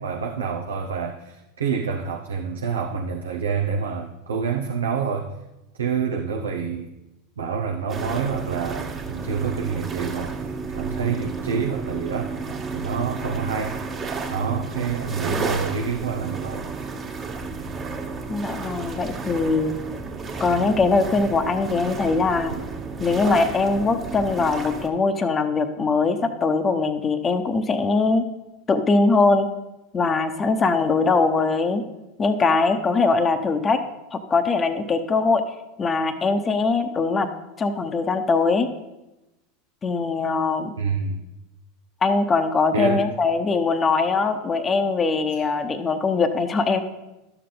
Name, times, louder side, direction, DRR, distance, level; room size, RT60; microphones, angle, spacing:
voice 1, 0.0-5.3 5.8-6.9 7.4-12.4 12.7-13.8 14.3-16.7 40.8-41.2 42.7-43.1 45.3-45.5, right 6 dB, 85° right, 2 dB, 0.7 m, -27 dB
sound 1, 7.9-24.9, right 4 dB, 35° right, 1.6 m, -32 dB
voice 2, 18.3-19.7 20.4-22.5 23.0-28.2 28.7-29.5 29.9-31.8 32.2-33.8 34.1-35.4 35.8-37.3 37.6-38.7 39.8-40.7 42.0-46.8, left 4 dB, 25° left, 7 dB, 0.9 m, -21 dB
12.0 x 6.8 x 3.9 m, 0.99 s
hypercardioid pair, 90°, 0 cm